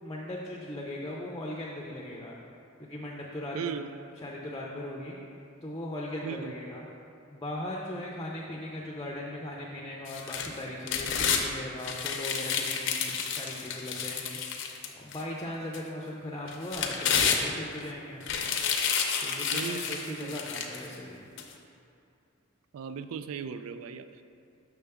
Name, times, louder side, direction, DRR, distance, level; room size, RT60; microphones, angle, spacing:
voice 1, 0.0-2.3 2.8-3.8 4.2-5.1 5.6-6.9 7.3-18.2 19.2-21.3, left 1 dB, 20° left, -2 dB, 0.5 m, -39 dB
voice 2, 3.5-3.9 6.2-6.5 19.5-20.4 22.7-24.2, right 7 dB, 80° right, 10 dB, 0.3 m, -37 dB
sound 1, 10.1-11.4 11.8-15.2 15.7-15.8 16.5-17.8 18.2-20.9 21.4-21.5, left 7 dB, 60° left, 0.6 m, -30 dB
6.7 x 6.1 x 3.5 m, 2.6 s
head